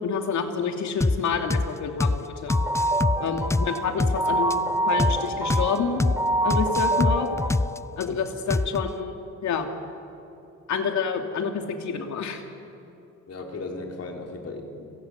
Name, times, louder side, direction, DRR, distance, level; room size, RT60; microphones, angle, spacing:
voice 1, 0.0-2.6 3.2-6.0 6.4-7.3 8.0-9.2 9.4-9.7 10.7-12.4, left 6 dB, 70° left, 4 dB, 2.9 m, -28 dB
sound 1, 1.0-1.2 1.5-1.7 2.0-2.2 2.5-4.2 4.5-4.6 5.0-5.2 5.5-5.7 6.0-6.2 6.5-8.0 8.5-8.9, left 2 dB, 10° left, 0.5 m, -24 dB
sound 2, 2.5-7.6, right 1 dB, 10° right, 5.4 m, -26 dB
voice 2, 13.3-14.9, left 3 dB, 55° left, 2 dB, 4.0 m, -36 dB
29.5 x 17.5 x 8.3 m, 2.9 s
cardioid pair, 90°, 30 cm